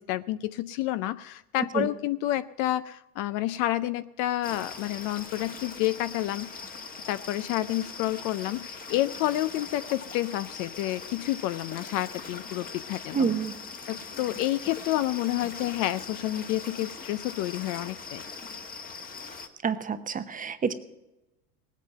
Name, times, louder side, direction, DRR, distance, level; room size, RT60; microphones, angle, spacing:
voice 1, 0.0-6.5 7.1-13.3 13.9-18.2, left 15 dB, 45° left, 14 dB, 0.5 m, -29 dB
sound 1, 4.4-19.5, left 4 dB, 20° left, 1.3 m, -41 dB
voice 2, 13.1-13.5 19.6-20.7, right 6 dB, 20° right, 10 dB, 0.8 m, -28 dB
18.5 x 8.3 x 6.7 m, 0.97 s
hypercardioid pair, 105°, 45 cm